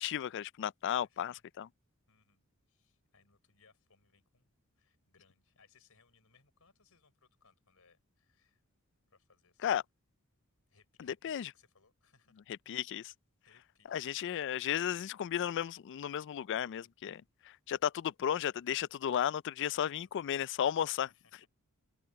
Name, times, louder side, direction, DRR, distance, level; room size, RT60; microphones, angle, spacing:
voice 1, 0.0-1.7 9.6-9.8 11.0-11.5 12.7-13.1 13.9-21.1, left 9 dB, 55° left, 0.3 m, -34 dB
voice 2, 0.9-1.4 2.1-4.5 4.8-8.6 9.1-9.6 10.7-12.4 13.4-14.5 19.7-20.5 21.1-21.5, left 5 dB, 70° left, 5.5 m, -68 dB
open air
head